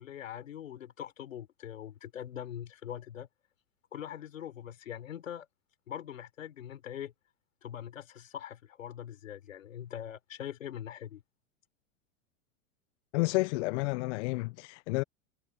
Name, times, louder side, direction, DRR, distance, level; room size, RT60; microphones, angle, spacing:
voice 1, 0.0-3.3 3.9-5.5 5.9-7.1 7.6-11.2, left 10 dB, 90° left, 3.8 m, -42 dB
voice 2, 13.1-15.0, left 23 dB, 65° left, 0.6 m, -30 dB
hypercardioid pair, 100°, 38 cm